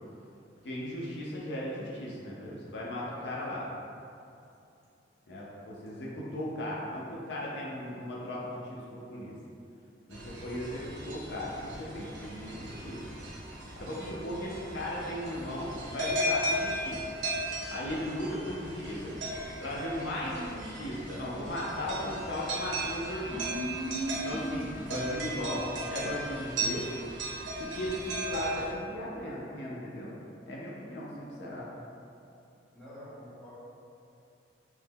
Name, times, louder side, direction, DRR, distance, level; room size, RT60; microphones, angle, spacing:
voice 1, 0.6-3.7 5.3-9.4 10.1-13.1 13.8-17.1 17.7-19.1 19.6-23.6 24.1-27.0 27.6-30.2 30.5-31.7, left 1 dB, 65° left, -5 dB, 0.5 m, -37 dB
sound 1, 10.1-28.7, right 1 dB, 75° right, 0.6 m, -36 dB
voice 2, 32.7-33.5, equal, 5° left, -11 dB, 0.8 m, -49 dB
3.1 x 2.1 x 3.5 m, 2.6 s
head